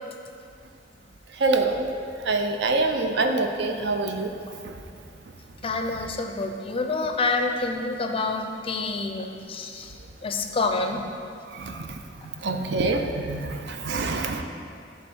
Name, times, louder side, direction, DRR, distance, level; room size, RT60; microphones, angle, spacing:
voice 1, 1.4-1.9 2.3-4.3 11.5-12.0 12.4-14.4, right 3 dB, 65° right, 5 dB, 0.5 m, -25 dB
voice 2, 5.6-9.9 10.2-11.0, left 3 dB, 30° left, 5 dB, 0.5 m, -27 dB
7.8 x 3.4 x 6.1 m, 2.4 s
head